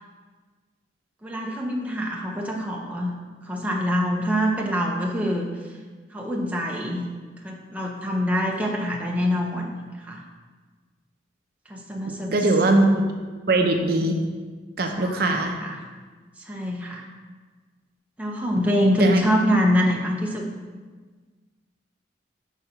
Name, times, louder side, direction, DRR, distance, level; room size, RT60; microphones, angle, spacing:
voice 1, 1.2-3.1 3.4-5.5 6.1-7.0 7.4-10.2 11.7-12.5 15.0-15.8 16.4-17.0 18.2-20.5, equal, 10° right, -1 dB, 0.7 m, -25 dB
voice 2, 12.3-13.0 13.5-14.2 14.8-15.6 19.0-19.2, right 2 dB, 55° right, 3 dB, 0.6 m, -20 dB
6.1 x 3.9 x 5.5 m, 1.4 s
head